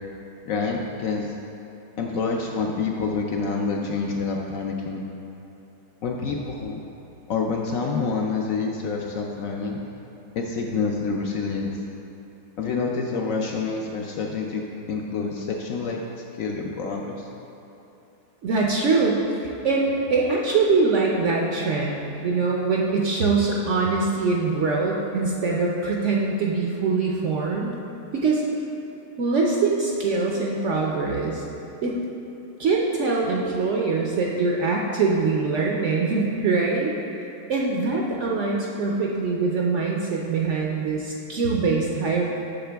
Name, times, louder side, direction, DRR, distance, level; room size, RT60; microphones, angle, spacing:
voice 1, 0.4-1.3 2.0-5.1 6.0-6.8 7.3-9.8 10.3-11.8 12.6-17.3, left 4 dB, 70° left, 0 dB, 0.8 m, -27 dB
voice 2, 18.4-19.2 19.6-27.7 28.1-28.4 29.2-31.4 31.8-31.9 32.6-36.9 37.2-42.2, right 4 dB, 65° right, -2 dB, 0.8 m, -23 dB
7.8 x 6.6 x 3.4 m, 2.9 s
omnidirectional pair, 1.8 m